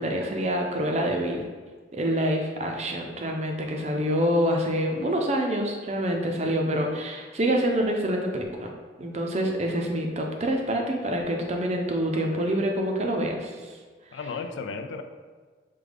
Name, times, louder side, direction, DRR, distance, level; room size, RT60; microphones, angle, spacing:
voice 1, 0.0-1.4 1.9-8.7 9.0-13.8, equal, 35° right, 2 dB, 0.4 m, -26 dB
voice 2, 12.1-12.6 14.1-15.0, left 4 dB, 90° left, 7 dB, 0.4 m, -35 dB
4.9 x 2.2 x 3.4 m, 1.4 s
head